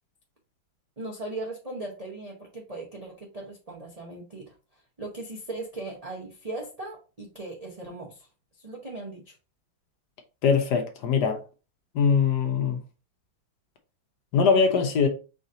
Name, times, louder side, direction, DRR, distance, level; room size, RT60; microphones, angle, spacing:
voice 1, 1.0-8.3 8.6-9.4, right 2 dB, 80° right, 0.3 m, -38 dB
voice 2, 10.4-11.4 11.9-12.8 14.3-15.1, left 6 dB, 65° left, 1.3 m, -22 dB
4.9 x 2.6 x 4.0 m
omnidirectional pair, 2.2 m